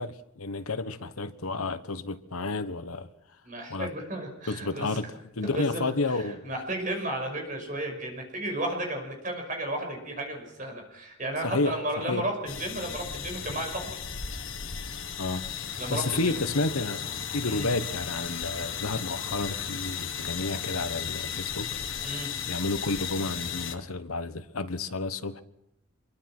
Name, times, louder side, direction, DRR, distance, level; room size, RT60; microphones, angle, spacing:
voice 1, 0.0-3.1 3.7-3.9 4.5-6.5 11.4-12.3 15.2-15.4 15.9-17.0 17.3-21.7 22.5-25.4, left 3 dB, 90° left, 1.3 m, -31 dB
voice 2, 3.4-5.0 5.4-14.0 15.3-15.5 15.8-16.4 17.4-17.7 22.0-22.3, right 1 dB, 40° right, 5.7 m, -33 dB
sound 1, 12.5-23.7, left 7 dB, 65° left, 1.7 m, -35 dB
25.0 x 23.0 x 6.1 m
head